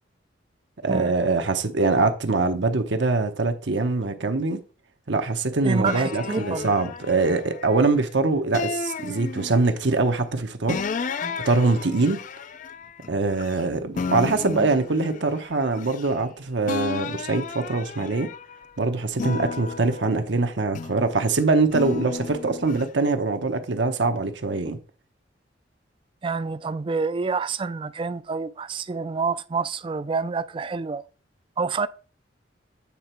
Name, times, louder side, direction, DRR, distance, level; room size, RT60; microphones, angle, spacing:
voice 1, 0.8-4.6 5.1-10.9 11.4-12.2 13.1-18.3 18.8-24.8, right 3 dB, 70° right, 0.9 m, -23 dB
voice 2, 5.6-6.8 11.2-11.4 26.2-31.0 31.6-31.9, right 4 dB, 25° right, 0.3 m, -28 dB
sound 1, 5.8-8.0 8.5-9.9 10.7-13.6 14.0-16.3 16.6-18.7 19.1-21.1 21.7-22.9, left 4 dB, 45° left, 0.4 m, -33 dB
8.5 x 3.9 x 4.4 m
head